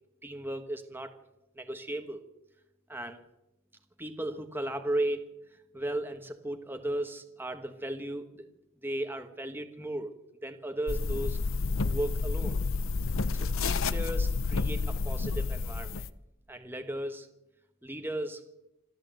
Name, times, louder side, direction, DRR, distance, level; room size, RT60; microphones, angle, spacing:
voice 1, 0.2-1.1 1.5-2.2 2.9-3.2 4.0-5.2 5.5-8.5 8.8-10.1 10.4-11.4 11.8-12.6 13.4-16.1 16.5-17.3 17.8-18.4, right 1 dB, 10° right, 6 dB, 1.3 m, -35 dB
sound 1, 10.9-16.1, left 4 dB, 65° left, 0.8 m, -30 dB
25.5 x 13.5 x 7.8 m, 0.92 s
head